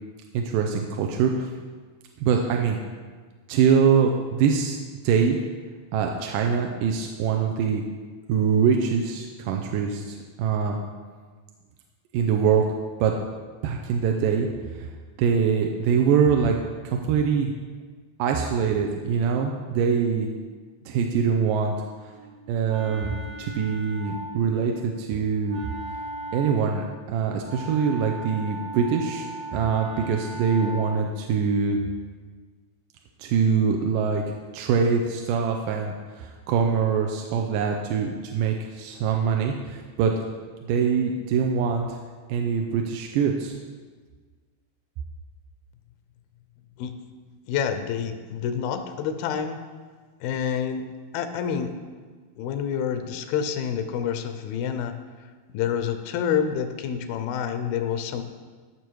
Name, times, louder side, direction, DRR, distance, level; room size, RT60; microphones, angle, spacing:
voice 1, 0.3-1.5 2.2-2.8 3.5-4.8 5.0-5.4 5.9-7.8 8.3-10.8 12.1-12.7 13.0-13.1 13.6-14.5 14.7-14.9 15.2-16.6 16.8-17.5 18.2-20.3 20.9-21.8 22.0-22.1 22.5-25.6 26.3-31.8 33.2-34.2 34.5-40.1 40.7-42.0 42.3-43.5, right 6 dB, 80° right, 2 dB, 2.1 m, -23 dB
Wind instrument woodwind instrument, 22.1-31.2, right 1 dB, 60° right, 1.7 m, -38 dB
voice 2, 47.5-49.6 50.2-50.9 51.1-51.8 52.4-54.9 55.5-58.2, left 8 dB, 90° left, 8 dB, 2.6 m, -28 dB
14.0 x 6.2 x 4.6 m, 1.5 s
omnidirectional pair, 4.2 m